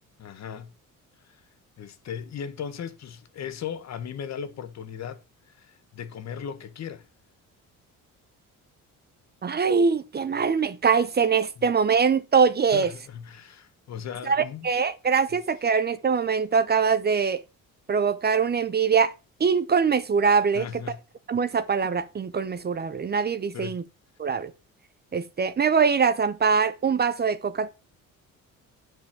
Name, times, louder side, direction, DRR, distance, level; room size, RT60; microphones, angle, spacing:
voice 1, 0.2-0.7 1.2-1.4 1.8-7.1 11.6-11.7 12.7-14.7 20.5-21.0 23.5-23.8, left 8 dB, 55° left, 1.5 m, -37 dB
voice 2, 9.4-12.9 14.3-17.4 17.9-19.1 19.4-20.7 21.3-23.8 24.2-24.5 25.1-27.7, right 6 dB, 30° right, 0.7 m, -23 dB
9.3 x 5.4 x 5.9 m
cardioid pair, 110°, 32 cm